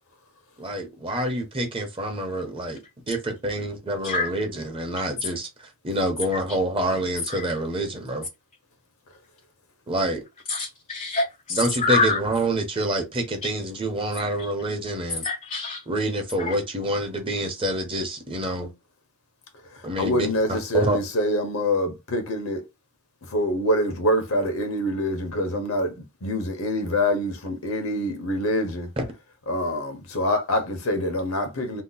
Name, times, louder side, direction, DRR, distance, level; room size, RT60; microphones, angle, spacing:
voice 1, 0.6-2.8 3.1-8.3 9.9-10.2 11.5-15.2 15.9-18.7 19.8-21.0 29.0-29.1, right 1 dB, 25° right, 0.8 m, -27 dB
voice 2, 10.5-12.2 15.2-15.8 16.4-16.6, left 3 dB, 35° left, 0.4 m, -26 dB
voice 3, 19.7-22.6 23.3-28.9 29.5-31.8, equal, 80° left, 0.9 m, -25 dB
2.8 x 2.0 x 3.9 m
head